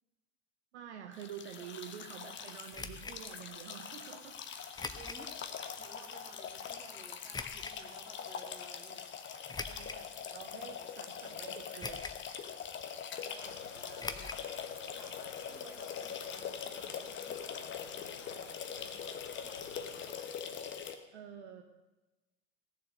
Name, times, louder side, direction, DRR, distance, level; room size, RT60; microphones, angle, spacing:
voice 1, 0.7-4.4 9.7-12.1 21.1-21.6, right 9 dB, 65° right, 5 dB, 1.1 m, -48 dB
sound 1, 1.1-21.0, left 7 dB, 30° left, 1.2 m, -43 dB
voice 2, 1.5-2.6 5.0-5.3 5.6-9.1 10.2-11.0 13.1-20.8, right 2 dB, 10° right, -1 dB, 3.3 m, -58 dB
sound 2, 2.7-3.2 4.8-5.3 5.8-5.9 7.3-7.8 9.5-10.1 10.7-10.8 11.8-12.3 12.5-12.6 14.0-14.4 14.7-14.8 15.1-15.2, left 3 dB, 10° left, 0.8 m, -42 dB
Rain, 13.4-20.1, left 5 dB, 90° left, 0.7 m, -54 dB
17.0 x 7.4 x 6.5 m, 1.1 s
figure-of-eight pair, 70°, 37 cm